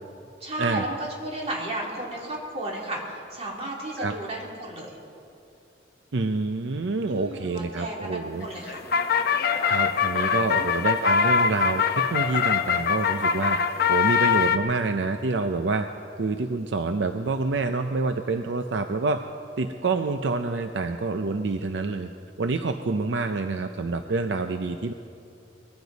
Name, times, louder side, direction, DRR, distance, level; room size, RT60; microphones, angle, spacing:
voice 1, 0.4-5.0 7.1-8.8 10.5-10.8, right 1 dB, 35° right, -3 dB, 2.9 m, -34 dB
voice 2, 6.1-8.5 9.7-13.6 13.9-15.9 16.2-19.2 19.6-22.1 22.4-24.9, right 3 dB, 75° right, 7 dB, 0.6 m, -27 dB
sound 1, 8.4-14.6, left 6 dB, 55° left, 0.8 m, -23 dB
21.0 x 14.5 x 4.1 m, 2.6 s
head